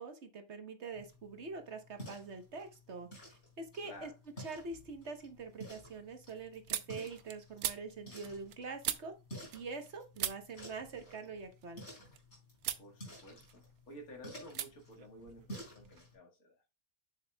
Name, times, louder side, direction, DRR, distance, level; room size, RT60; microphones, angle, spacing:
voice 1, 0.0-4.1 4.4-9.1 9.5-11.8, right 4 dB, 55° right, 1.3 m, -45 dB
sound 1, 0.9-16.1, equal, 50° left, 4.4 m, -53 dB
voice 2, 3.8-4.1 12.8-16.6, equal, 80° left, 2.3 m, -53 dB
sound 2, 3.9-4.5 4.8-9.9 10.2-12.2 12.6-12.9 13.3-14.0 14.5-14.7 15.0-16.0, right 11 dB, 90° right, 1.2 m, -42 dB
7.2 x 7.1 x 2.2 m
omnidirectional pair, 1.5 m